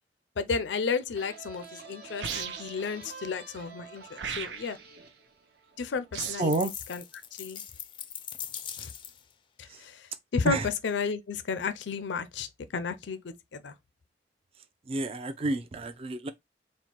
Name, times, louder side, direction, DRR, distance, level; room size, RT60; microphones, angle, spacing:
voice 1, 0.4-4.8 5.8-6.5 6.9-7.0 7.4-7.6 8.8-8.9 9.6-10.6 10.8-13.7, left 5 dB, 80° left, 0.5 m, -33 dB
sound 1, 1.1-6.6, right 4 dB, 60° right, 1.0 m, -48 dB
sound 2, 2.2-2.9 4.2-4.9 6.1-6.6, right 8 dB, 80° right, 0.5 m, -36 dB
voice 2, 6.4-6.7 9.7-9.8 10.4-10.7 14.9-16.3, right 2 dB, 35° right, 0.4 m, -29 dB
sound 3, 6.5-9.3, left 9 dB, 30° left, 0.4 m, -41 dB
4.2 x 2.1 x 4.4 m
head